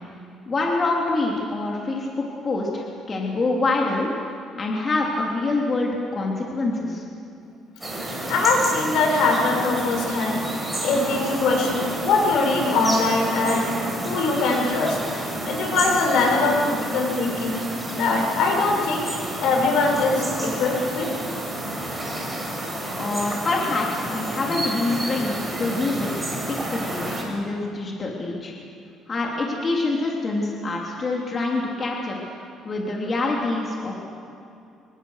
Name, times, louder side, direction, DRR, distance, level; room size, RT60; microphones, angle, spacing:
voice 1, 0.5-4.1 4.5-7.0 23.0-28.5 29.1-32.2 32.6-34.0, left 2 dB, 30° left, -2 dB, 3.2 m, -26 dB
sound 1, 7.8-27.2, right 1 dB, 5° right, 6.3 m, -30 dB
voice 2, 8.3-13.7 14.0-17.6 17.9-19.0 19.4-21.1, left 3 dB, 75° left, 1 dB, 6.7 m, -22 dB
27.0 x 23.5 x 6.6 m, 2.5 s
cardioid pair, 130°, 0 cm